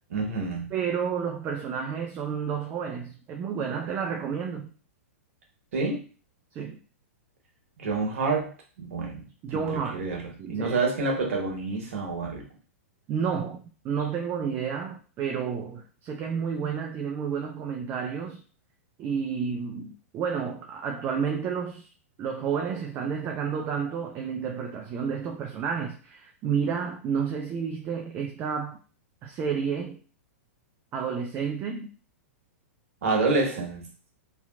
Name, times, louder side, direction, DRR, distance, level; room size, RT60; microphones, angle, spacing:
voice 1, 0.1-0.7 5.7-6.0 7.8-8.5 8.8-9.2 9.5-12.4 33.0-33.9, right 3 dB, 65° right, 0 dB, 1.0 m, -28 dB
voice 2, 0.7-4.7 6.5-6.8 9.4-10.0 10.4-10.7 13.1-18.4 19.0-21.9 22.2-28.8 29.2-30.0 30.9-31.9, right 6 dB, 30° right, 1 dB, 0.4 m, -30 dB
2.8 x 2.3 x 2.4 m, 0.38 s
hypercardioid pair, 105°, 8 cm